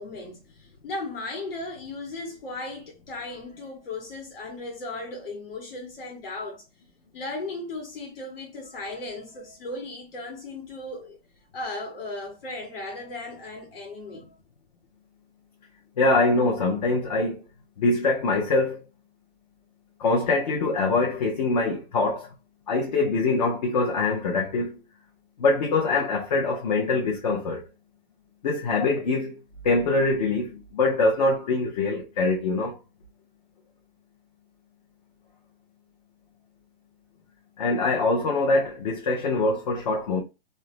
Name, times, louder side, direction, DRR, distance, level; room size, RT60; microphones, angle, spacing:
voice 1, 0.0-6.6 7.1-11.2 11.5-14.3, left 2 dB, 70° left, 1.3 m, -36 dB
voice 2, 16.0-17.4 17.8-18.8 20.0-22.3 22.7-24.8 25.4-27.6 28.4-29.4 29.6-32.8 37.6-40.2, left 3 dB, 45° left, 0.7 m, -24 dB
2.7 x 2.1 x 3.0 m
hypercardioid pair, 165°, 30 cm